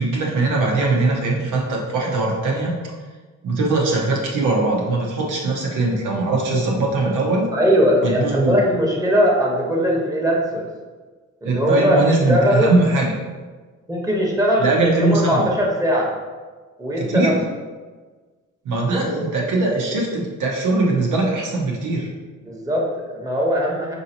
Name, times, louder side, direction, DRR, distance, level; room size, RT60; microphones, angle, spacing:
voice 1, 0.0-2.8 3.4-7.5 8.0-8.6 11.4-13.1 14.6-15.4 17.0-17.3 18.6-22.1, right 2 dB, 80° right, -2 dB, 0.9 m, -20 dB
voice 2, 7.5-10.7 11.4-12.0 12.3-12.7 13.9-16.1 16.8-17.3 22.4-23.9, equal, 10° right, -3 dB, 1.1 m, -20 dB
4.7 x 2.7 x 2.9 m, 1.3 s
cardioid pair, 70°, 31 cm